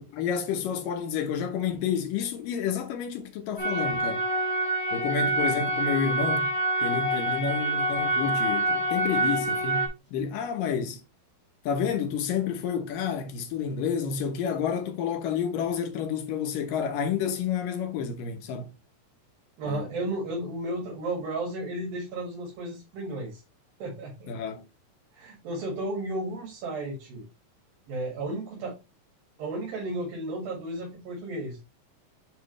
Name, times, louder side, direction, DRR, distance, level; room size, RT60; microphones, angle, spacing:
voice 1, 0.0-4.2 4.9-6.5 6.8-11.0 11.7-18.7 19.6-20.0 24.3-24.6, left 7 dB, 75° left, 2.7 m, -30 dB
sound 1, 3.6-9.9, right 2 dB, 5° left, 1.8 m, -26 dB
voice 2, 19.6-23.4 23.8-24.3 25.1-27.2 27.9-28.8 29.4-31.6, right 2 dB, 85° right, 3.8 m, -33 dB
9.3 x 3.8 x 3.2 m
omnidirectional pair, 4.1 m